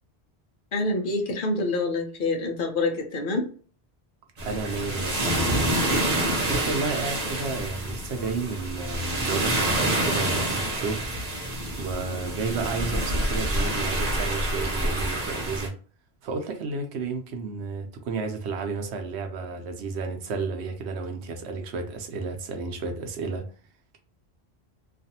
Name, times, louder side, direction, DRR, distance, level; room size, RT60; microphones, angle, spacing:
voice 1, 0.7-3.5, left 2 dB, 60° left, 0.7 m, -26 dB
sound 1, 4.4-15.7, right 1 dB, 45° right, 0.8 m, -27 dB
voice 2, 4.4-5.7 6.4-11.0 11.8-15.7 16.2-23.4, right 4 dB, 85° right, 0.9 m, -32 dB
2.5 x 2.4 x 2.7 m
omnidirectional pair, 1.1 m